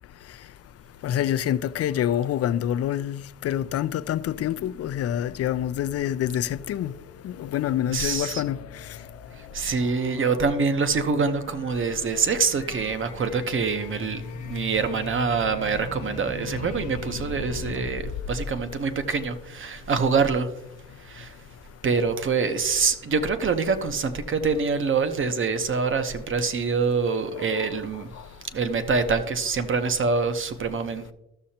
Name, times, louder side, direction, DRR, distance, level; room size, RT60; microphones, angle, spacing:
voice 1, 1.0-6.9 7.2-8.6, left 11 dB, 55° left, 0.5 m, -26 dB
sound 1, 3.4-19.6, left 6 dB, 75° left, 0.9 m, -40 dB
voice 2, 7.9-8.4 9.5-20.5 21.0-21.3 21.8-28.1 28.5-31.1, right 5 dB, 40° right, 1.0 m, -25 dB
14.5 x 6.4 x 2.9 m
cardioid pair, 90°, 30 cm